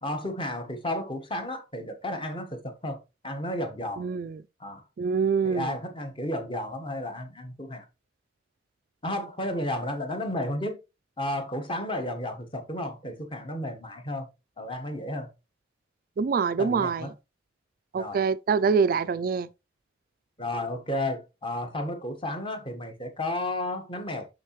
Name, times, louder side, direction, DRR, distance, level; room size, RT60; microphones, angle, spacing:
voice 1, 0.0-4.0 4.6-4.8 5.4-7.8 9.0-10.8 11.2-14.3 14.6-15.3 16.6-17.1 18.0-18.2 20.4-24.3, left 1 dB, 25° left, 1.3 m, -32 dB
voice 2, 4.0-4.4 5.0-5.7 16.2-17.1 17.9-19.5, right 5 dB, 50° right, 0.3 m, -25 dB
6.5 x 6.4 x 3.1 m
head